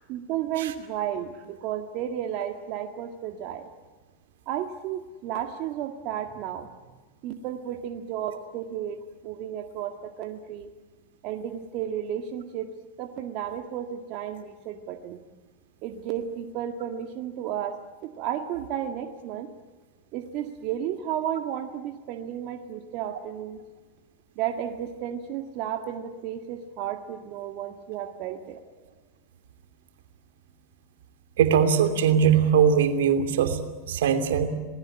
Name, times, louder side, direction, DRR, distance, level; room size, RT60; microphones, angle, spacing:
voice 1, 0.0-3.7 4.5-6.7 7.2-10.7 11.2-12.7 13.0-15.2 15.8-19.5 20.1-23.6 24.4-28.6, right 10 dB, 50° right, 5 dB, 1.8 m, -33 dB
voice 2, 31.4-33.6 33.9-34.5, right 7 dB, 75° right, 8 dB, 2.9 m, -21 dB
27.0 x 20.0 x 8.8 m, 1.3 s
hypercardioid pair, 105°, 0 cm